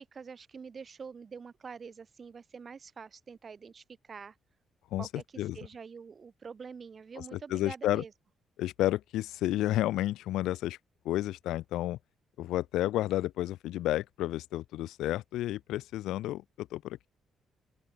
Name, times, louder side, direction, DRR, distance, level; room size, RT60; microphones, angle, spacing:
voice 1, 0.0-4.3 5.0-8.1, right 5 dB, 40° right, 3.5 m, -46 dB
voice 2, 4.9-5.6 7.2-8.0 8.6-10.8 11.0-12.0 12.4-17.1, left 14 dB, 90° left, 1.6 m, -31 dB
open air
cardioid pair, 90°, 0 cm